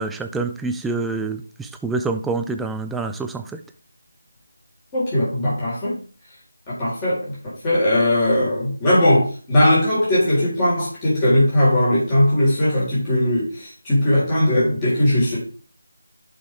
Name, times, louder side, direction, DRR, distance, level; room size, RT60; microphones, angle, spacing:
voice 1, 0.0-3.6, right 3 dB, 5° right, 0.4 m, -26 dB
voice 2, 4.9-6.0 6.8-7.3 7.6-15.4, left 1 dB, 15° left, 4.2 m, -19 dB
11.0 x 5.4 x 3.4 m
figure-of-eight pair, 160°, 0 cm